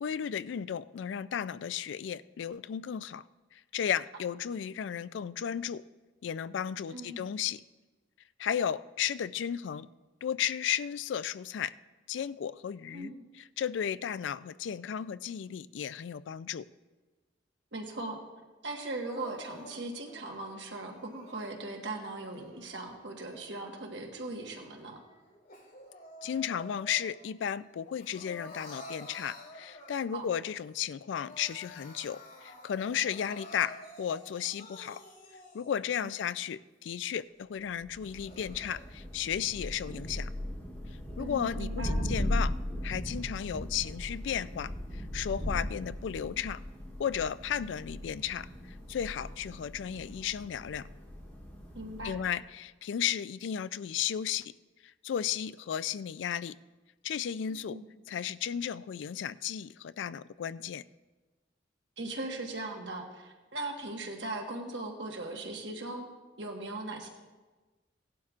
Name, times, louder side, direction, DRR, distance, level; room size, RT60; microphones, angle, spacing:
voice 1, 0.0-3.2 3.5-5.8 6.2-7.6 8.4-9.9 10.2-11.7 12.1-16.7 26.2-35.0 35.5-40.3 41.2-42.6 42.8-46.6 47.0-50.8 52.0-54.5 55.0-56.5 57.0-57.8 58.1-60.8, left 8 dB, 80° left, 17 dB, 0.3 m, -34 dB
voice 2, 6.9-7.3 12.9-13.3 17.7-18.2 18.6-25.0 30.1-30.3 41.2-42.1 51.7-52.2 57.7-57.9 62.0-66.1 66.4-67.1, right 2 dB, 70° right, 1 dB, 1.4 m, -39 dB
Crying sobbing, 19.1-21.5 22.1-23.9 24.3-27.3 27.6-30.2 30.7-30.8 31.0-35.9 36.4-36.5 37.1-37.2 37.9-38.8, left 1 dB, 60° left, 3.8 m, -50 dB
Thunder, 37.8-52.4, left 1 dB, 10° left, 3.0 m, -38 dB
17.5 x 11.5 x 2.5 m, 1.2 s
head